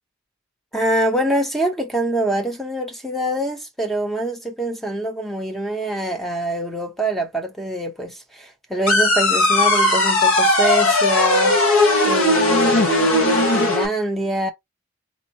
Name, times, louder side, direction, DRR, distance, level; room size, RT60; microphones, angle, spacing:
voice 1, 0.7-11.6 12.0-14.5, right 1 dB, ahead, 0.8 m, -24 dB
sound 1, 8.9-13.9, left 2 dB, 65° left, 1.1 m, -17 dB
4.1 x 2.6 x 2.8 m
head